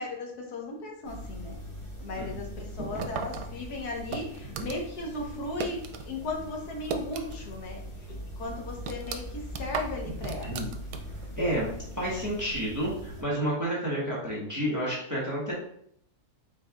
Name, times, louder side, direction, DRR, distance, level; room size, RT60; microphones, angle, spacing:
voice 1, 0.0-1.6 2.0-7.8 8.1-10.7, left 2 dB, 75° left, 1 dB, 1.5 m, -36 dB
sound 1, 1.0-13.2, equal, 35° left, 1.4 m, -41 dB
sound 2, 3.0-6.1 6.4-7.6 7.9-8.0 8.5-11.3, right 5 dB, 90° right, 1.1 m, -37 dB
voice 2, 11.4-11.7 11.9-15.5, equal, 10° right, -6 dB, 1.2 m, -30 dB
5.0 x 4.1 x 2.4 m, 0.69 s
omnidirectional pair, 1.7 m